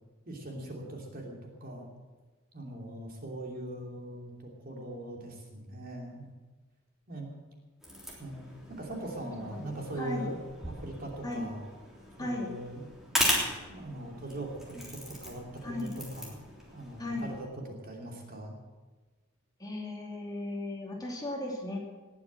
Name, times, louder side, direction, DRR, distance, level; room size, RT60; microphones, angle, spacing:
voice 1, 0.3-1.9 2.5-4.3 4.6-6.3 7.1-7.3 8.2-8.4 8.7-11.6 12.2-12.8 13.7-16.4 16.7-18.5, right 1 dB, 45° right, 0 dB, 2.9 m, -40 dB
sound 1, 7.8-17.4, equal, ahead, 3.4 m, -37 dB
voice 2, 12.2-12.5 15.6-15.9 17.0-17.3 19.6-21.8, left 1 dB, 20° left, -2 dB, 2.8 m, -35 dB
19.5 x 7.1 x 7.6 m, 1.3 s
head